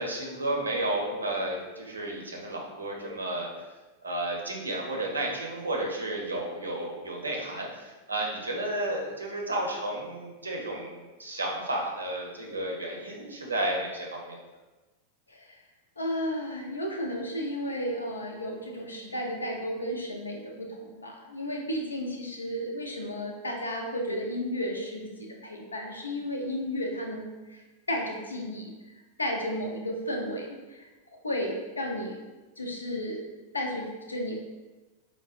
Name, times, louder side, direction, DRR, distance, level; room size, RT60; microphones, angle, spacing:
voice 1, 0.0-3.5 4.0-14.4, right 1 dB, 75° right, -1 dB, 0.6 m, -32 dB
voice 2, 16.0-27.6 27.9-28.7 29.2-32.2 32.6-33.2 33.5-34.3, equal, 75° left, 2 dB, 0.5 m, -33 dB
4.7 x 2.1 x 2.3 m, 1.2 s
figure-of-eight pair, 90°, 0 cm